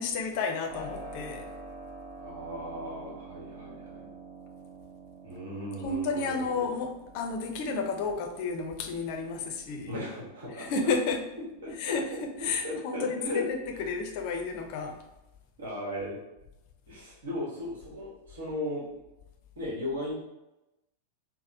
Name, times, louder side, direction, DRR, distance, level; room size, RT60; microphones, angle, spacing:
voice 1, 0.0-1.4 5.8-9.9 10.6-11.2 11.8-15.0, left 4 dB, 45° left, 3 dB, 0.5 m, -31 dB
Keyboard (musical), 0.7-13.4, right 2 dB, 20° right, 0.9 m, -48 dB
voice 2, 2.2-4.1 5.2-6.8 9.9-10.7 11.6-13.5 15.6-16.2 16.9-18.8 19.6-20.1, left 1 dB, 65° right, -5 dB, 1.2 m, -37 dB
4.0 x 2.0 x 2.7 m, 0.95 s
figure-of-eight pair, 90°, 0 cm